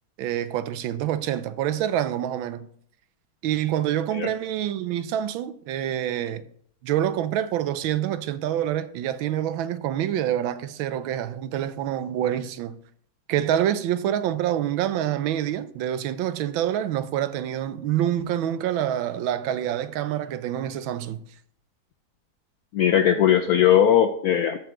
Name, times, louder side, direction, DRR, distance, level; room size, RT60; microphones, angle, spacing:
voice 1, 0.2-2.7 3.4-6.4 6.8-12.8 13.3-21.2, right 11 dB, 80° right, 1.4 m, -26 dB
voice 2, 22.7-24.6, left 9 dB, 80° left, 0.8 m, -19 dB
14.0 x 5.8 x 3.7 m
omnidirectional pair, 2.2 m